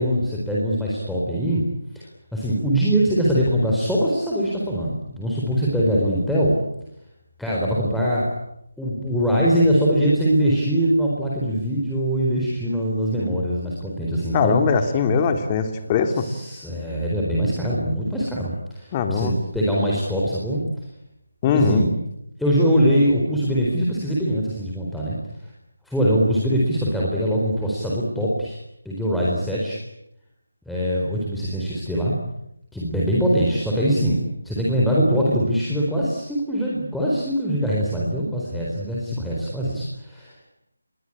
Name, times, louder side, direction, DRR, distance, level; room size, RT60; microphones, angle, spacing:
voice 1, 0.0-1.6 1.9-2.0 2.3-6.6 7.4-8.3 8.8-14.6 15.1-15.2 16.1-20.6 21.5-21.9 22.4-25.2 25.9-28.6 28.8-29.8 30.7-32.1 32.7-40.5, equal, ahead, -6 dB, 4.3 m, -22 dB
voice 2, 14.3-16.3 18.9-19.3 21.4-21.9, left 5 dB, 20° left, 7 dB, 3.0 m, -21 dB
28.5 x 22.5 x 8.8 m, 0.81 s
figure-of-eight pair, 165°, 0 cm